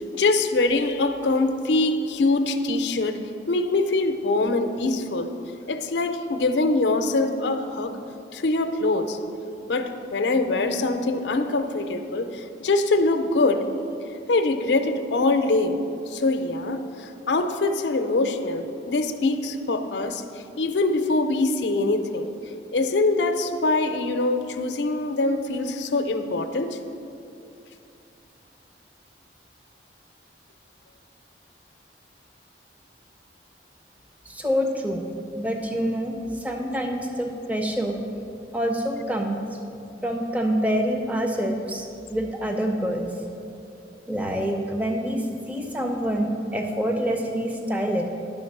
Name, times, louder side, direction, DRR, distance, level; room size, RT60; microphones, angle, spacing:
voice 1, 0.1-3.2 3.5-5.3 5.7-8.0 8.3-9.2 9.6-13.6 14.3-15.8 16.1-20.2 20.6-22.3 22.7-26.8, left 2 dB, 85° left, 7 dB, 0.5 m, -23 dB
voice 2, 34.3-35.0 35.3-38.0 38.5-39.4 40.0-43.1 44.1-48.0, equal, 10° right, 2 dB, 0.6 m, -26 dB
10.5 x 3.8 x 6.6 m, 2.7 s
head